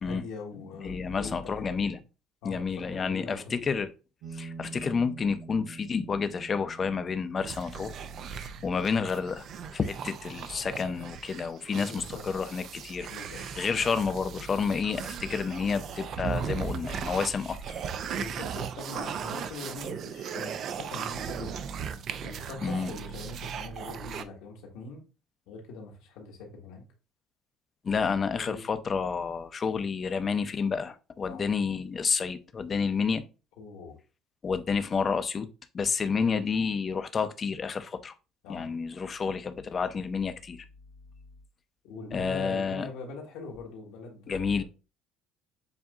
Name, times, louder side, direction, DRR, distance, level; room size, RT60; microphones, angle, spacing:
voice 1, 0.0-1.9 2.4-3.7 11.7-12.2 13.1-13.4 18.1-21.6 22.2-25.0 25.5-26.8 27.9-28.1 28.3-28.7 31.2-31.5 33.6-34.0 38.4-38.7 41.8-44.6, left 3 dB, 90° left, 1.4 m, -42 dB
voice 2, 0.8-2.0 2.4-3.9 4.3-7.9 8.3-9.5 9.7-13.1 13.4-17.6 22.6-22.9 27.8-33.2 34.4-35.5 35.7-38.1 38.5-40.6 42.1-42.9 44.3-44.6, left 5 dB, 35° left, 0.5 m, -30 dB
sound 1, 4.2-13.2, right 4 dB, 80° right, 0.9 m, -48 dB
sound 2, 7.4-24.2, right 7 dB, 55° right, 0.4 m, -37 dB
7.0 x 2.7 x 2.4 m
cardioid pair, 110°, 0 cm